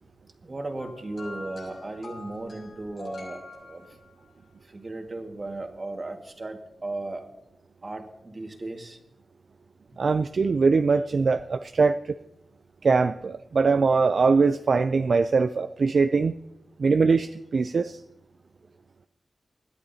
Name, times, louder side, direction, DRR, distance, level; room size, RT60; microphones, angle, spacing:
voice 1, 0.4-3.9 4.7-7.3 7.8-9.0, right 2 dB, 35° right, 1.9 m, -36 dB
sound 1, 0.8-4.3 5.4-5.5, left 2 dB, 70° left, 6.5 m, -44 dB
voice 2, 10.0-12.1 12.8-16.3 16.8-18.0, right 4 dB, 60° right, 0.4 m, -22 dB
21.0 x 13.5 x 2.8 m
wide cardioid pair, 110°, 0 cm